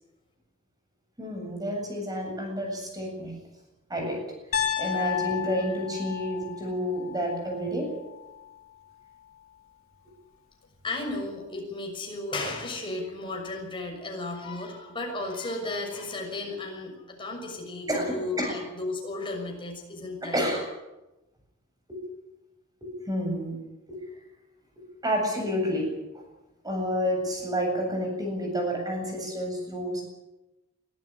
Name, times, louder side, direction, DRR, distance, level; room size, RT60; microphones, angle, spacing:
voice 1, 1.2-3.4 3.9-4.2 4.5-7.9 17.9-18.5 20.2-20.7 21.9-22.0 22.8-23.5 23.9-24.0 24.8-26.0 26.6-30.0, equal, 20° right, 2 dB, 7.7 m, -30 dB
Piano, 4.5-8.6, left 9 dB, 85° left, 3.0 m, -33 dB
voice 2, 10.8-20.4, left 2 dB, 25° left, 1 dB, 6.5 m, -34 dB
23.5 x 14.0 x 9.8 m, 1.0 s
head